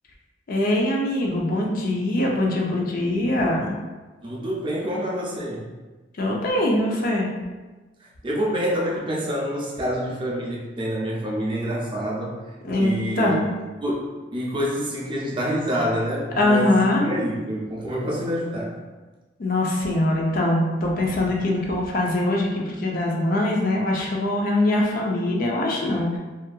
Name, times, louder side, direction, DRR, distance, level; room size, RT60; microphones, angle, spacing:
voice 1, 0.5-3.7 6.2-7.3 12.6-13.3 16.4-17.1 19.4-26.2, left 1 dB, 50° left, -1 dB, 0.4 m, -22 dB
voice 2, 4.2-5.7 8.2-12.5 12.8-13.5 13.8-18.7, equal, 25° right, -3 dB, 0.4 m, -27 dB
2.6 x 2.4 x 2.2 m, 1.2 s
head